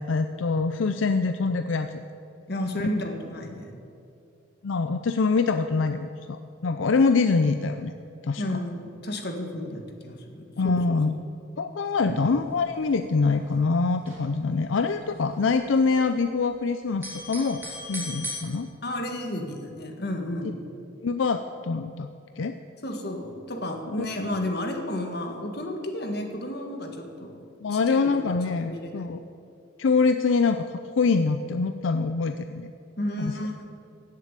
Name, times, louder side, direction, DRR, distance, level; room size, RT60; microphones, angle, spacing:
voice 1, 0.0-2.0 4.6-7.9 8.2-8.4 10.6-11.1 11.6-17.6 17.9-18.7 21.0-22.1 22.4-22.5 23.9-24.1 27.6-29.2 29.8-32.7 33.2-33.3, left 4 dB, 80° left, 9 dB, 0.5 m, -24 dB
voice 2, 2.5-3.7 8.4-10.8 12.0-12.2 18.8-20.7 22.8-27.4 27.7-28.9 33.0-33.7, left 1 dB, 55° left, 3 dB, 1.7 m, -32 dB
sound 1, 12.0-12.4 12.6-12.7 12.9-14.6 14.9-16.5 16.8-18.3, equal, 10° right, 3.6 m, -38 dB
16.5 x 7.7 x 8.3 m, 2.6 s
head